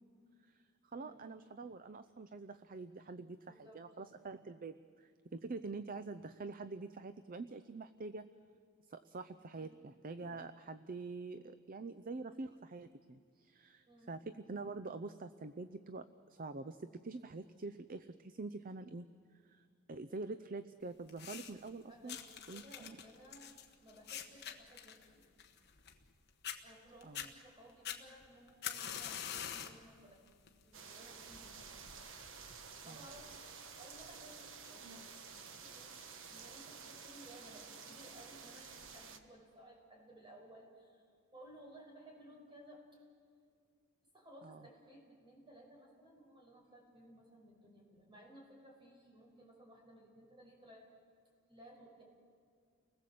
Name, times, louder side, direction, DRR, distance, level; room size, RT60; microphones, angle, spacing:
voice 1, 0.9-8.3 8.9-19.1 19.4-22.2 22.5-23.0 27.0-27.2 32.9-33.1 44.4-44.6, right 3 dB, 40° right, 12 dB, 0.6 m, -46 dB
voice 2, 3.4-3.8 9.5-9.8 13.9-14.2 21.9-23.5 23.8-25.3 26.6-30.2 30.6-31.8 32.8-36.0 36.3-41.0 41.3-43.0 44.1-50.9 51.5-52.0, right 1 dB, 25° right, -1 dB, 6.3 m, -58 dB
sound 1, 21.1-21.7 22.1-26.1 26.4-26.6 27.0-27.3 27.8-29.8 30.3-30.6 31.4-31.5, left 9 dB, 50° left, 1.4 m, -44 dB
sound 2, 30.7-39.2, right 5 dB, 60° right, 1.4 m, -51 dB
30.0 x 20.0 x 7.7 m, 2.1 s
head